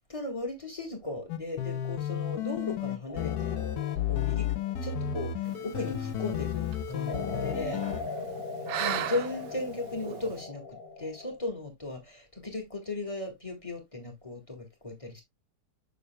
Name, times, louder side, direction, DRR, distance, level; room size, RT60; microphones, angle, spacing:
voice 1, 0.1-3.7 4.0-4.5 4.8-7.8 8.8-15.2, left 2 dB, 20° left, 1.9 m, -37 dB
sound 1, 1.3-8.0, left 10 dB, 70° left, 1.3 m, -32 dB
sound 2, 3.1-6.1 7.1-11.4, left 3 dB, 35° left, 1.2 m, -40 dB
sound 3, 5.4-10.4, right 10 dB, 85° right, 1.4 m, -39 dB
7.0 x 6.9 x 2.2 m
omnidirectional pair, 1.8 m